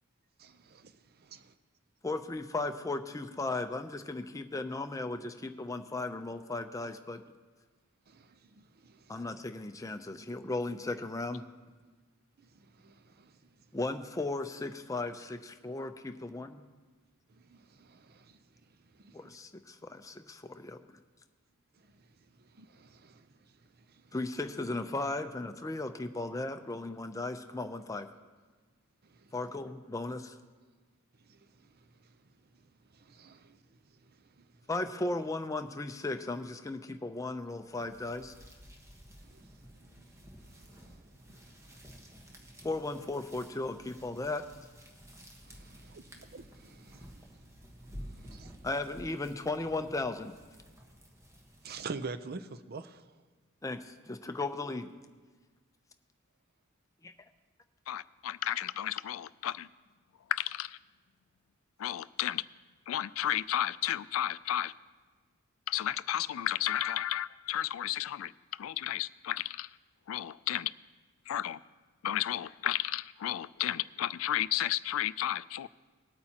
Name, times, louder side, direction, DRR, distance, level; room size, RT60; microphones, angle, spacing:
voice 1, 0.4-0.9 1.2-1.5 8.1-9.2 12.4-13.4 17.5-18.4 19.0-19.4 21.9-22.0 22.4-23.3 23.9-24.0 29.1-29.3 31.3-31.4 33.0-33.6 34.4-34.5 39.2-40.1 40.5-41.0 41.3-41.4 42.2-42.6 45.4-47.3 47.8-48.6 51.6-53.0, right 4 dB, 50° right, 12 dB, 0.6 m, -47 dB
voice 2, 2.0-7.2 9.1-11.4 13.7-16.6 19.1-20.8 24.1-28.1 29.3-30.4 34.7-38.3 42.6-44.7 48.6-50.3 53.6-54.9, left 2 dB, 15° left, 7 dB, 0.5 m, -36 dB
sound 1, 37.6-52.1, equal, 15° right, 1.2 m, -52 dB
voice 3, 57.9-59.7 60.3-60.8 61.8-62.4 62.9-64.7 65.7-69.7 70.1-70.7 71.3-71.6 72.0-75.7, left 12 dB, 75° left, 17 dB, 0.3 m, -33 dB
19.5 x 8.7 x 2.9 m, 1.4 s
head